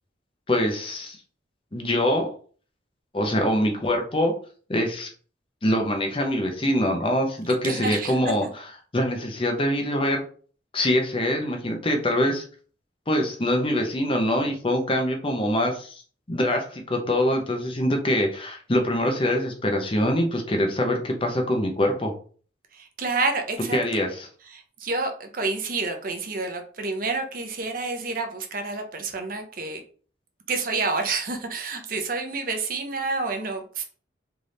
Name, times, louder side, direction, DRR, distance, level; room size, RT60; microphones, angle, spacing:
voice 1, 0.5-1.2 1.7-2.3 3.1-4.3 4.7-5.1 5.6-10.2 10.7-12.4 13.1-16.0 16.3-22.1 23.7-24.3, left 1 dB, 30° left, 3 dB, 0.8 m, -24 dB
voice 2, 7.6-8.3 22.7-23.8 24.5-29.8 30.5-33.8, right 3 dB, 50° right, 5 dB, 0.8 m, -29 dB
3.6 x 3.4 x 4.0 m, 0.42 s
head